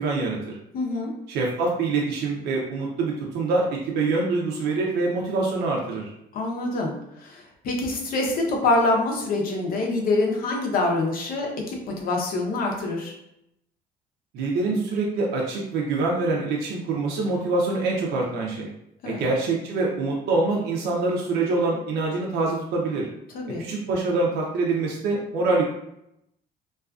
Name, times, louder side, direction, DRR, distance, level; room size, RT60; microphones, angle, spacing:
voice 1, 0.0-0.6 1.3-6.1 14.3-18.7 19.0-23.1 23.6-25.6, right 3 dB, 75° right, -2 dB, 0.5 m, -25 dB
voice 2, 0.7-1.1 6.3-13.1 19.0-19.2 23.3-23.7, left 2 dB, 60° left, 0 dB, 0.6 m, -25 dB
2.4 x 2.3 x 2.3 m, 0.81 s
cardioid pair, 110°, 17 cm